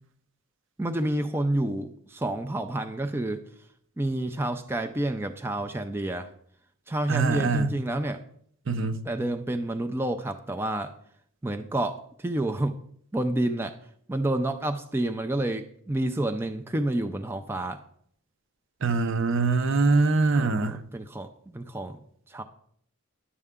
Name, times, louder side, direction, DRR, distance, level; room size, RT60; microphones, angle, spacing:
voice 1, 0.8-3.4 4.0-6.3 6.9-8.2 9.1-10.9 11.4-12.8 13.1-13.7 14.1-17.8 20.3-22.0 22.3-22.4, right 1 dB, 10° right, 0.4 m, -29 dB
voice 2, 7.1-7.7 8.7-9.0 18.8-20.8, right 3 dB, 60° right, 0.7 m, -24 dB
11.0 x 6.7 x 3.6 m
head